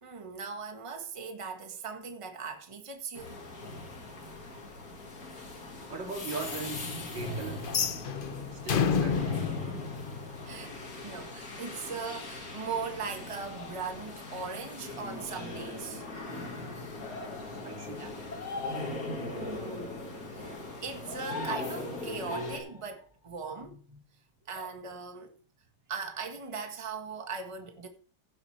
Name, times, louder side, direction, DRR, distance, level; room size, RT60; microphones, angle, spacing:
voice 1, 0.0-3.4 9.1-9.9 10.4-10.7 11.0-16.0 18.0-18.1 19.3-24.0 24.5-25.3 25.9-27.9, right 5 dB, 20° right, 1.4 m, -39 dB
sound 1, 3.2-22.6, left 2 dB, 50° left, 2.3 m, -40 dB
voice 2, 5.9-7.7 8.5-9.2 17.6-18.1, right 4 dB, 80° right, 3.4 m, -39 dB
sound 2, 7.6-10.7, left 6 dB, 75° left, 0.4 m, -30 dB
sound 3, 13.6-14.1 17.0-17.4 18.3-19.4 21.0-21.9 22.3-22.8 24.5-24.7, left 3 dB, 35° left, 0.8 m, -41 dB
16.0 x 7.9 x 3.3 m
omnidirectional pair, 2.0 m